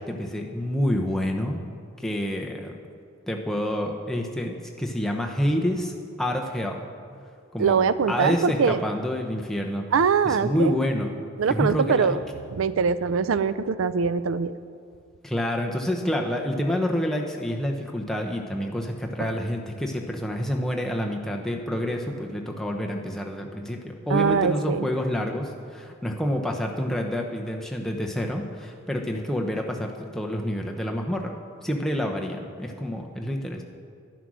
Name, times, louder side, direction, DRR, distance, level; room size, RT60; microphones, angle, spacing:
voice 1, 0.1-1.6 2.0-2.8 3.3-6.8 7.1-7.2 7.5-7.8 8.1-9.8 10.2-11.1 11.5-12.2 15.2-31.3 31.6-33.6, equal, ahead, 1 dB, 0.8 m, -28 dB
voice 2, 7.6-8.8 9.9-10.7 11.4-12.2 12.5-14.5 19.2-19.3 24.1-24.9, right 6 dB, 80° right, 15 dB, 0.4 m, -22 dB
11.0 x 10.0 x 6.2 m, 2.3 s
head